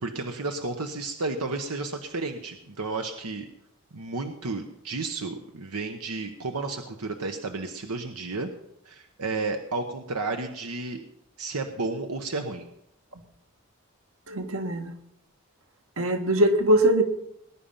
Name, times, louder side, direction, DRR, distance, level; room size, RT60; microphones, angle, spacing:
voice 1, 0.0-3.5 3.9-8.5 8.8-11.0 11.4-12.7, right 3 dB, 85° right, 5 dB, 1.2 m, -32 dB
voice 2, 14.3-14.9 16.0-17.0, right 1 dB, 70° right, 6 dB, 1.7 m, -22 dB
20.0 x 10.5 x 5.7 m, 0.79 s
head